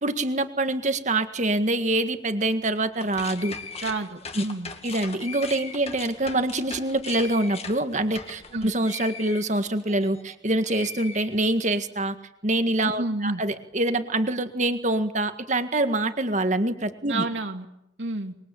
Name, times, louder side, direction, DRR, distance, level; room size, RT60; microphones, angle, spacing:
voice 1, 0.0-3.6 4.4-4.5 4.8-12.2 12.4-17.3, right 2 dB, 40° right, 8 dB, 1.8 m, -25 dB
sound 1, 2.9-10.3 10.6-11.8, left 5 dB, 35° left, 2.2 m, -39 dB
voice 2, 3.8-4.7 8.5-8.7 13.0-13.4 17.1-17.7 18.0-18.3, right 2 dB, 70° right, 4 dB, 2.4 m, -29 dB
25.5 x 23.0 x 8.6 m, 0.83 s
head